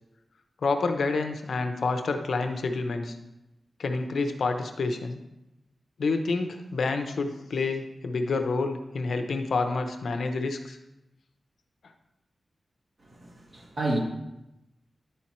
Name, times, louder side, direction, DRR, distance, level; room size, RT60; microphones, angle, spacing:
voice 1, 0.6-3.1 3.8-5.2 6.0-10.8, left 3 dB, 80° left, 6 dB, 0.8 m, -28 dB
voice 2, 13.2-14.0, right 1 dB, 45° right, 0 dB, 1.6 m, -29 dB
10.5 x 4.5 x 4.3 m, 0.93 s
wide cardioid pair, 75°, 0 cm